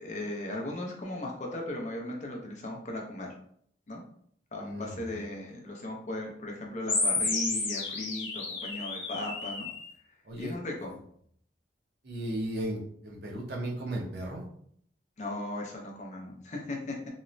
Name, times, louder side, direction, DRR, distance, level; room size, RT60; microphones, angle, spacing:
voice 1, 0.0-3.3 3.9-4.0 4.5-9.7 10.4-10.9 15.2-17.0, left 1 dB, 40° left, 0 dB, 0.5 m, -37 dB
voice 2, 4.6-5.2 10.2-10.5 10.9-11.0 12.0-14.4, right 1 dB, 55° right, -2 dB, 0.7 m, -36 dB
sound 1, 6.9-9.9, left 3 dB, 90° left, 0.8 m, -31 dB
3.0 x 2.0 x 2.5 m, 0.64 s
head